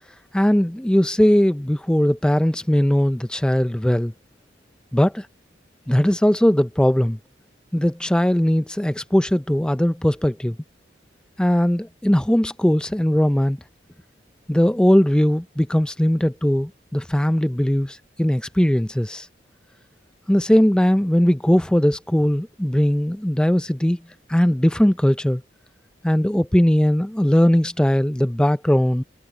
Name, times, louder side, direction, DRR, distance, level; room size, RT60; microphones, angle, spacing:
voice 1, 0.3-4.1 4.9-5.3 5.9-7.2 7.7-10.6 11.4-13.6 14.5-19.3 20.3-24.0 24.3-25.4 26.0-29.0, equal, 5° left, 0.4 m, -19 dB
head